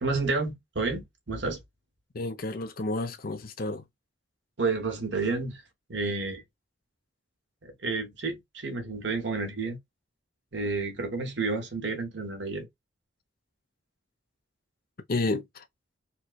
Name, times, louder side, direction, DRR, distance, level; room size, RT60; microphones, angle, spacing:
voice 1, 0.0-1.6 4.6-5.6 5.9-6.4 7.6-9.8 10.5-12.7, right 3 dB, 70° right, 1.2 m, -30 dB
voice 2, 2.1-3.8 15.1-15.6, left 2 dB, 50° left, 0.8 m, -31 dB
4.5 x 2.2 x 2.4 m
head